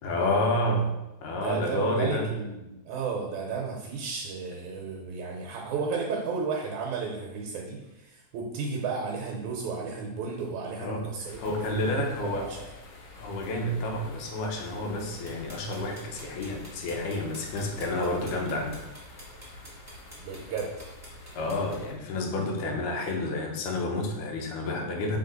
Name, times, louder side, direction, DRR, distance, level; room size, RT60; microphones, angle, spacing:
voice 1, 0.0-0.9 1.2-2.3 10.8-12.5 13.2-18.8 21.4-25.2, left 1 dB, 80° left, 1 dB, 2.4 m, -29 dB
voice 2, 1.3-12.6 20.2-20.7, right 5 dB, 75° right, -1 dB, 2.2 m, -33 dB
sound 1, 11.3-21.9, left 1 dB, 60° left, 1.6 m, -47 dB
sound 2, 15.3-21.8, right 1 dB, 5° right, 1.6 m, -48 dB
6.4 x 4.1 x 4.0 m, 0.97 s
omnidirectional pair, 3.6 m